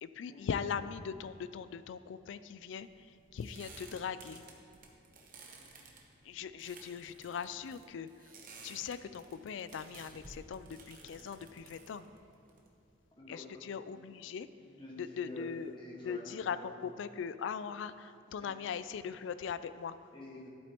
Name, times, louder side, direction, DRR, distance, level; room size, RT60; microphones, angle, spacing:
voice 1, 0.0-4.4 6.2-8.2 8.6-12.1 13.3-14.5 15.0-15.7 16.0-20.1, left 6 dB, 70° left, 14 dB, 0.3 m, -40 dB
sound 1, 2.7-13.1, right 3 dB, 45° right, 1.0 m, -55 dB
sound 2, 11.0-12.3 14.9-16.1, equal, 70° right, 1.2 m, -69 dB
voice 2, 14.6-15.5 15.7-16.7 18.4-18.5 20.1-20.5, left 1 dB, 25° left, -4 dB, 1.5 m, -49 dB
11.5 x 8.4 x 2.9 m, 2.6 s
head